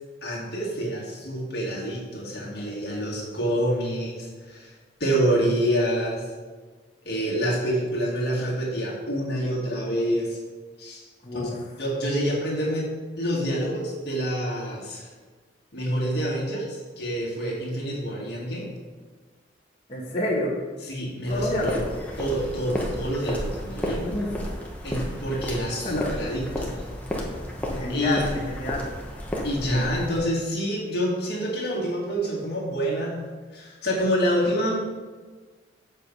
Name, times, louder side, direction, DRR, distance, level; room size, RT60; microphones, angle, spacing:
voice 1, 0.2-4.7 5.0-6.2 7.1-10.4 10.8-11.0 11.3-11.5 11.8-12.9 13.2-15.1 15.7-18.7 20.9-21.8 22.2-24.0 24.8-26.7 27.9-28.3 29.4-33.2 33.5-34.7, equal, 55° left, -4 dB, 2.0 m, -27 dB
voice 2, 11.2-11.6 19.9-20.6 21.3-21.9 23.9-24.4 25.8-26.1 27.7-28.9, left 1 dB, 30° left, -9 dB, 1.5 m, -28 dB
sound 1, 21.3-30.2, equal, 10° left, 1.0 m, -32 dB
7.3 x 4.8 x 5.4 m, 1.4 s
head